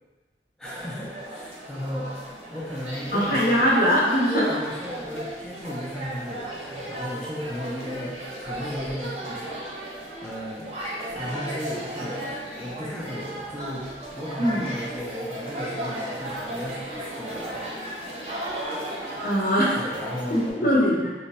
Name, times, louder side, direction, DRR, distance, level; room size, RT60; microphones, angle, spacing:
voice 1, 0.6-2.1 2.4-3.7 4.3-10.8 11.1-13.9 14.1-18.2 19.8-21.1, equal, 5° left, -5 dB, 0.4 m, -35 dB
sound 1, 0.6-20.5, right 1 dB, 35° right, 0.7 m, -35 dB
voice 2, 3.1-4.4 14.4-14.7 19.2-19.8 20.3-21.1, equal, 55° left, -5 dB, 0.8 m, -21 dB
3.2 x 2.0 x 4.1 m, 1.3 s
head